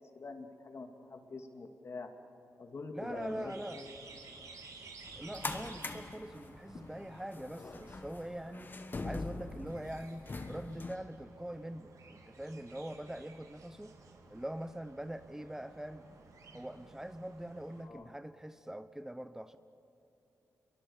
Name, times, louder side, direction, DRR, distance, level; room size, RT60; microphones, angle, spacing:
voice 1, 0.1-2.1 2.6-4.5 17.8-18.1, left 3 dB, 50° left, 5 dB, 2.3 m, -45 dB
voice 2, 2.9-3.8 5.2-8.7 9.0-13.9 14.3-16.1 16.5-19.6, right 1 dB, 10° right, 11 dB, 0.7 m, -43 dB
sound 1, 3.0-17.8, right 4 dB, 75° right, 3.2 m, -55 dB
sound 2, 5.0-11.0, left 3 dB, 35° left, 1.4 m, -43 dB
29.0 x 23.0 x 7.0 m, 2.9 s
cardioid pair, 95°, 6 cm